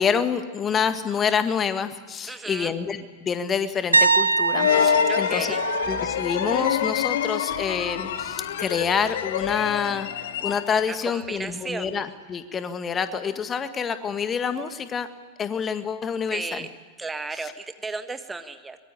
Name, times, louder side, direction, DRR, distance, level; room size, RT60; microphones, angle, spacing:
voice 1, 0.0-5.5 5.9-10.1 10.4-15.1 15.4-16.7 17.4-17.5, left 6 dB, 20° left, 10 dB, 1.7 m, -27 dB
voice 2, 2.3-2.7 5.1-5.6 10.9-11.9 16.3-16.7 17.0-18.8, right 3 dB, 10° right, 8 dB, 1.6 m, -34 dB
sound 1, 3.9-7.7 8.0-8.4 11.2-11.3, right 4 dB, 80° right, 1.0 m, -25 dB
sound 2, 4.5-11.0, left 11 dB, 60° left, 1.0 m, -26 dB
sound 3, 4.8-11.5, right 8 dB, 35° right, 2.8 m, -48 dB
24.0 x 22.5 x 9.9 m, 1.4 s
figure-of-eight pair, 90°, 0 cm